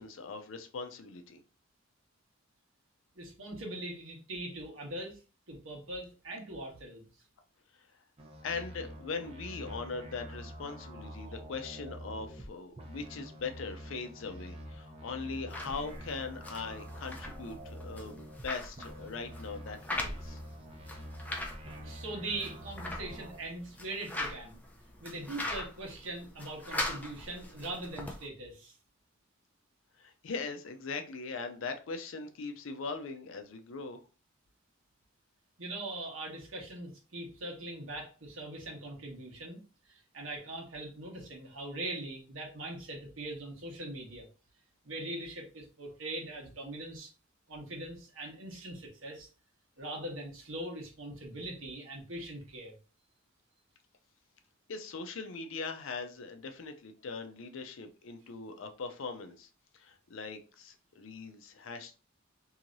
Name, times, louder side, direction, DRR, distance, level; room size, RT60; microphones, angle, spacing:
voice 1, 0.0-1.4 7.8-7.9 8.4-20.4 30.0-34.0 54.7-59.5 59.7-61.9, left 4 dB, 70° left, 6 dB, 0.5 m, -40 dB
voice 2, 3.2-5.2 5.5-7.1 21.8-24.6 25.0-28.7 35.6-39.6 39.9-44.3 44.8-47.1 47.5-49.3 49.8-52.8, right 1 dB, 75° right, -1 dB, 1.2 m, -41 dB
sound 1, 8.2-12.5 12.8-18.5 18.8-23.4, equal, 30° right, 0.6 m, -46 dB
sound 2, 15.5-28.3, left 1 dB, 10° left, 0.5 m, -41 dB
3.0 x 2.7 x 2.5 m, 0.34 s
head